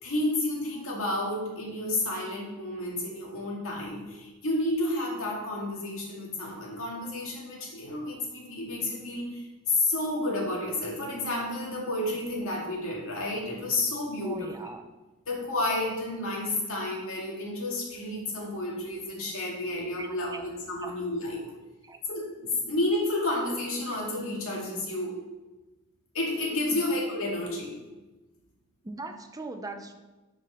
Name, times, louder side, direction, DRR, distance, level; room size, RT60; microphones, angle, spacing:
voice 1, 0.0-14.5 15.3-21.4 22.1-25.1 26.1-27.7, left 2 dB, 65° left, -3 dB, 2.5 m, -31 dB
voice 2, 14.2-14.8 20.0-20.4 20.8-20.9 21.8-22.0 26.7-26.9 28.8-29.9, right 3 dB, 15° right, 6 dB, 0.7 m, -40 dB
8.3 x 5.1 x 5.8 m, 1.1 s
head